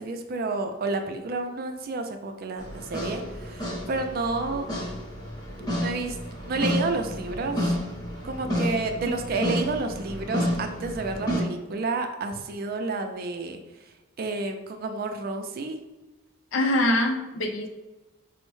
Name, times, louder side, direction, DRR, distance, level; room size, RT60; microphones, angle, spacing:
voice 1, 0.0-4.7 5.7-6.2 6.4-7.8 8.2-13.6 14.2-15.8, right 3 dB, 50° right, 6 dB, 0.4 m, -30 dB
sound 1, 2.6-11.4, equal, 20° left, 0.8 m, -30 dB
voice 2, 16.5-17.7, left 1 dB, 75° left, 4 dB, 0.5 m, -24 dB
5.2 x 2.0 x 3.1 m, 1.1 s
head